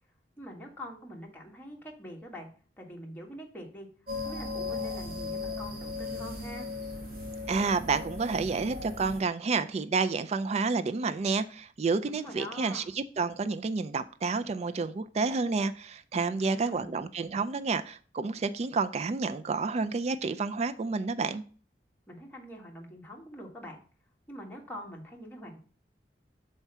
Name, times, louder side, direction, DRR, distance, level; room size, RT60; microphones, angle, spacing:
voice 1, 0.4-2.5 2.8-3.9 4.2-6.7 12.0-12.9 16.3-16.9 22.1-23.8 24.3-25.6, equal, 10° left, -1 dB, 1.5 m, -44 dB
sound 1, 4.1-9.2, left 3 dB, 60° right, 2.8 m, -37 dB
voice 2, 7.5-21.4, right 4 dB, 40° right, 11 dB, 0.4 m, -30 dB
6.0 x 4.5 x 5.5 m, 0.41 s
head